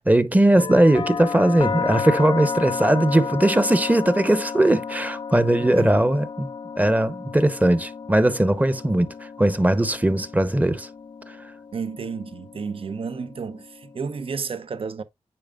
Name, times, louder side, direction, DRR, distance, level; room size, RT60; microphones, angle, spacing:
voice 1, 0.0-6.5 6.8-9.1 9.4-10.9, right 1 dB, 15° right, 0.8 m, -19 dB
sound 1, 0.6-14.5, left 5 dB, 45° left, 0.5 m, -33 dB
voice 2, 5.6-5.9 8.9-9.0 11.7-15.0, right 5 dB, 60° right, 0.7 m, -32 dB
8.6 x 5.1 x 2.4 m
cardioid pair, 55°, 11 cm